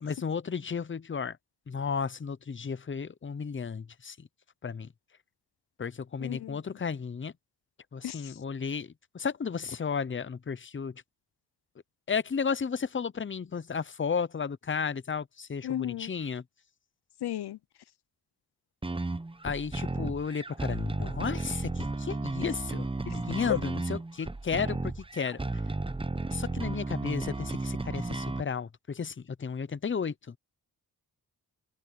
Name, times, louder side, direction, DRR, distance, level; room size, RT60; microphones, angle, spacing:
voice 1, 0.0-1.4 1.7-4.3 4.6-4.9 5.8-7.3 7.9-11.0 12.1-16.4 19.4-25.4 26.3-30.4, left 6 dB, 30° left, 0.7 m, -33 dB
voice 2, 6.2-6.6 8.0-8.4 15.6-16.1 17.2-17.6, left 12 dB, 90° left, 0.7 m, -35 dB
sound 1, 18.8-28.4, right 2 dB, 15° right, 0.8 m, -34 dB
wide cardioid pair, 90°, 38 cm